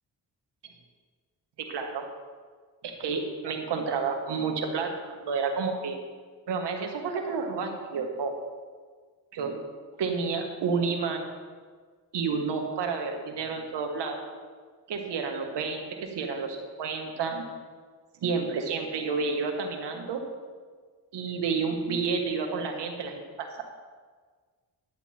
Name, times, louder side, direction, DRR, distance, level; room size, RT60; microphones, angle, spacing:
voice 1, 1.7-2.0 2.8-6.0 6.5-8.3 9.3-9.6 10.0-11.3 12.1-14.2 14.9-17.5 18.2-20.2 21.1-23.6, right 5 dB, 90° right, 3 dB, 1.5 m, -30 dB
11.0 x 8.8 x 4.4 m, 1.5 s
cardioid pair, 65°, 40 cm